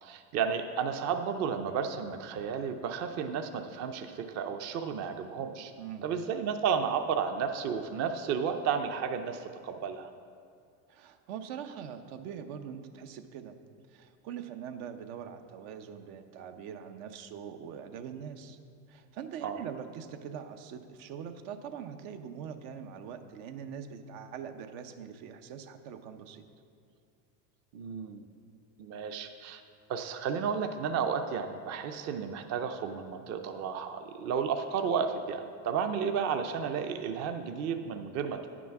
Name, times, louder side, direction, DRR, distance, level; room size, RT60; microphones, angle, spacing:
voice 1, 0.0-5.7 6.0-10.1 19.4-19.6 27.7-28.3 28.8-29.6 29.9-38.5, right 6 dB, 40° right, 7 dB, 0.5 m, -32 dB
voice 2, 10.9-13.6 13.9-18.6 18.9-26.4, right 8 dB, 75° right, 8 dB, 0.8 m, -43 dB
9.2 x 6.1 x 5.9 m, 2.3 s
cardioid pair, 140°, 41 cm